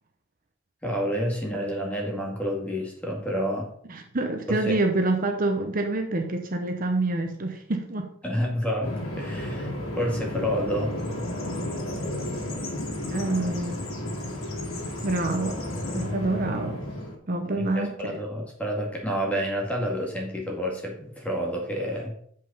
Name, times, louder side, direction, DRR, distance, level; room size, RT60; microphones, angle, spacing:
voice 1, 0.8-3.7 4.5-4.8 8.2-11.0 17.6-22.2, equal, 5° left, -1 dB, 2.0 m, -29 dB
voice 2, 3.9-8.1 13.1-13.9 15.0-15.6 15.9-16.8 17.3-18.2, right 2 dB, 45° right, 4 dB, 0.8 m, -27 dB
Bird vocalization bird call bird song, 8.8-17.1, left 1 dB, 90° left, 2.4 m, -32 dB
7.7 x 5.4 x 5.5 m, 0.62 s
head